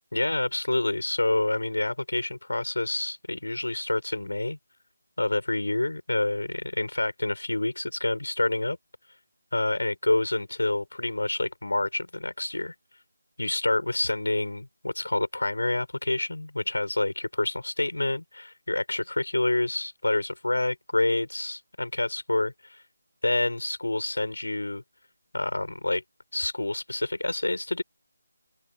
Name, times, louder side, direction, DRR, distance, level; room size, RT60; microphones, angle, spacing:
voice 1, 0.1-4.6 5.2-8.8 9.5-12.7 13.4-22.8 23.2-24.8 25.3-26.0 26.3-27.8, left 2 dB, 85° left, 7.2 m, -28 dB
figure-of-eight pair, 165°, 0 cm